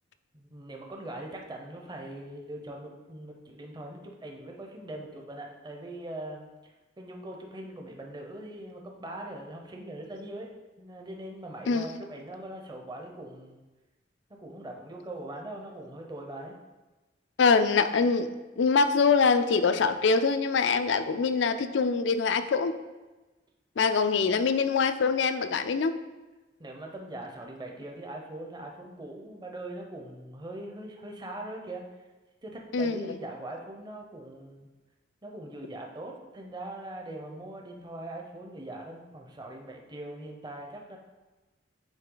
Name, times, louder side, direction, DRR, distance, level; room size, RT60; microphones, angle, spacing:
voice 1, 0.3-10.5 10.8-13.6 14.3-16.5 26.6-31.8 32.4-34.7 35.2-41.0, right 1 dB, 25° right, 1 dB, 0.7 m, -41 dB
voice 2, 17.4-18.3 18.6-22.7 23.8-26.0 32.7-33.2, left 5 dB, 65° left, 11 dB, 0.4 m, -24 dB
8.9 x 3.2 x 3.8 m, 1.2 s
head